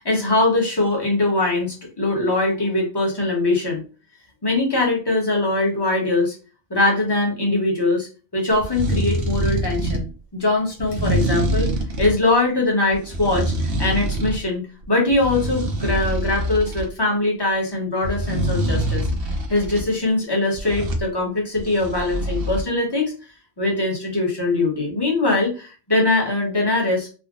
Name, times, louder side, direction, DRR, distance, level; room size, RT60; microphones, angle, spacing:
voice 1, 0.0-3.8 4.4-6.3 6.7-11.7 12.0-14.6 14.9-19.1 19.5-23.1 23.6-27.1, left 2 dB, 20° left, -2 dB, 0.9 m, -22 dB
sound 1, 8.5-10.1 10.8-12.2 12.9-14.4 14.8-16.9 18.0-19.9 20.5-21.1 21.6-22.6, right 1 dB, 60° right, 0.8 m, -25 dB
3.6 x 2.1 x 2.4 m, 0.34 s
omnidirectional pair, 1.2 m